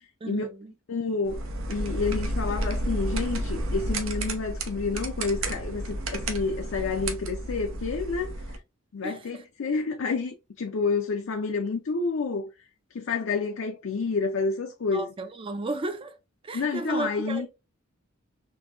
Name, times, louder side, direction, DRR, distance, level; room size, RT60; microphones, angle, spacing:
voice 1, 0.2-0.7 9.0-9.2 14.9-16.2 16.4-17.5, right 2 dB, 25° right, 0.4 m, -33 dB
voice 2, 0.9-1.4 1.7-8.3 8.9-12.5 12.9-15.1 16.5-17.5, left 4 dB, 65° left, 0.5 m, -29 dB
sound 1, 1.3-8.6, right 1 dB, 75° right, 0.7 m, -31 dB
3.8 x 2.7 x 2.3 m
head